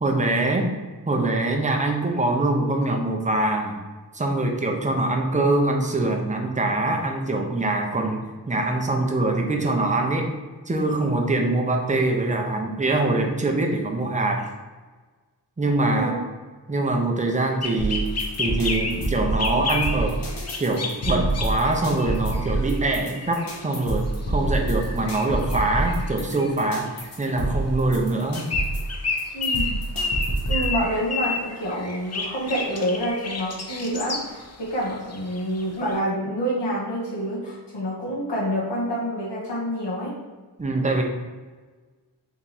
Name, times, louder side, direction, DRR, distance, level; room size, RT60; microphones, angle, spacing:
voice 1, 0.0-0.7 1.1-3.8 4.1-10.3 10.7-14.5 15.6-16.1 16.7-18.1 18.4-20.2 20.6-28.5 40.6-41.0, right 2 dB, 20° right, 2 dB, 0.5 m, -24 dB
sound 1, 17.6-23.7 24.2-24.4 24.7-27.3 28.2-34.5 34.8-35.9, left 4 dB, 40° left, 0.5 m, -31 dB
sound 2, 17.8-30.8, right 2 dB, 55° left, 1.1 m, -27 dB
voice 2, 29.3-29.8 30.5-40.1, equal, 85° left, -7 dB, 1.4 m, -27 dB
3.5 x 3.0 x 4.1 m, 1.4 s
wide cardioid pair, 105°, 41 cm